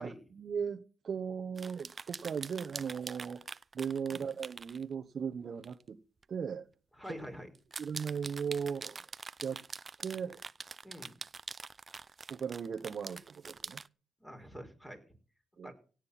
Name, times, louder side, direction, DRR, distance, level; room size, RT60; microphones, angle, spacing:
voice 1, 0.0-3.4 3.7-6.0 6.3-6.6 7.8-9.0 9.4-9.6 10.0-10.4 12.3-13.8 15.6-15.7, right 6 dB, 50° right, 1.1 m, -37 dB
sound 1, 1.6-4.8 5.6-5.8 6.2-6.3 7.6-13.9, right 4 dB, 30° right, 0.6 m, -45 dB
voice 2, 7.0-7.5 10.8-11.2 14.2-15.1 15.6-15.7, equal, 10° left, 5.2 m, -46 dB
17.0 x 8.9 x 5.9 m
cardioid pair, 90°, 0 cm